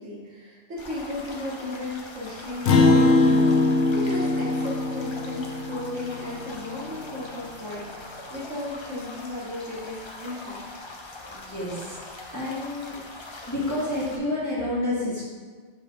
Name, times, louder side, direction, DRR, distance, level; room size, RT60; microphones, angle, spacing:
voice 1, 0.0-10.6, left 2 dB, 90° right, -5 dB, 1.9 m, -35 dB
sound 1, 0.8-14.2, left 2 dB, 35° left, 0.5 m, -42 dB
Acoustic guitar, 2.7-7.3, left 2 dB, 65° left, 0.9 m, -22 dB
voice 2, 11.3-12.0 12.3-13.0 13.5-15.3, left 1 dB, 15° left, -9 dB, 1.8 m, -29 dB
5.6 x 3.8 x 4.9 m, 1.6 s
omnidirectional pair, 1.2 m